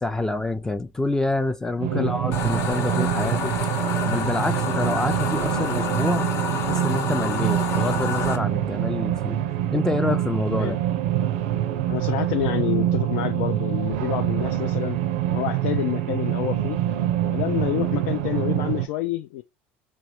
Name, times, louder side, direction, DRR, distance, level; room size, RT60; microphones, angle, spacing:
voice 1, 0.0-3.5 3.9-6.3 6.6-9.4 9.7-10.8, left 2 dB, 10° left, 0.4 m, -27 dB
sound 1, 1.8-18.9, right 12 dB, 80° right, 0.5 m, -25 dB
sound 2, 2.3-8.4, left 6 dB, 55° left, 0.9 m, -29 dB
voice 2, 11.9-15.0 15.3-16.8 17.3-19.4, left 14 dB, 75° left, 0.4 m, -28 dB
3.0 x 2.3 x 4.2 m
supercardioid pair, 85°, 6 cm